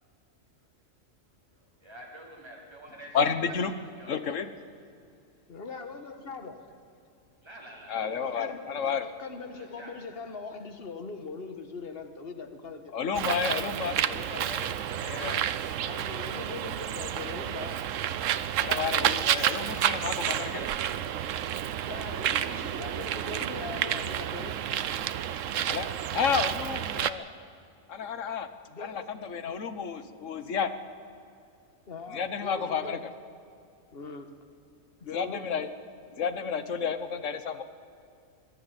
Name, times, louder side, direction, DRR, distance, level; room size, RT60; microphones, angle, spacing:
voice 1, 1.5-4.2 7.4-8.5 9.5-10.0 31.3-31.7 33.9-34.0, right 1 dB, 20° right, -2 dB, 4.2 m, -49 dB
voice 2, 3.1-3.7 4.1-4.5 7.9-9.0 12.9-14.8 15.0-15.4 18.6-20.7 25.7-27.3 27.9-28.5 28.8-30.7 32.1-33.1 35.1-35.7 36.2-37.6, left 6 dB, 75° left, 11 dB, 1.5 m, -31 dB
voice 3, 5.5-6.6 8.2-13.0 15.2-15.5 15.8-17.8 21.8-24.5 28.7-30.0 31.9-33.1 33.9-34.3 35.0-35.5, left 4 dB, 50° left, 7 dB, 1.7 m, -41 dB
Bird, 13.1-27.1, right 10 dB, 80° right, 1.1 m, -30 dB
21.5 x 12.5 x 10.0 m, 2.5 s
omnidirectional pair, 1.3 m